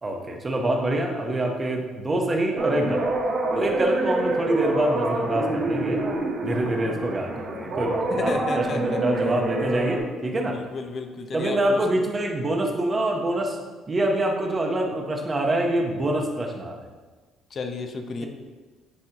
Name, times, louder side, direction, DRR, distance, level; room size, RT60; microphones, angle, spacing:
voice 1, 0.0-3.1 3.5-6.0 6.4-10.6 11.3-13.6 13.9-16.8, right 1 dB, 25° right, 2 dB, 1.0 m, -25 dB
sound 1, 2.6-10.0, right 2 dB, 50° right, 1.3 m, -27 dB
voice 2, 8.1-9.4 10.5-11.9 17.5-18.3, left 4 dB, 40° left, 6 dB, 0.7 m, -32 dB
9.6 x 4.3 x 2.9 m, 1.3 s
cardioid pair, 125°, 0 cm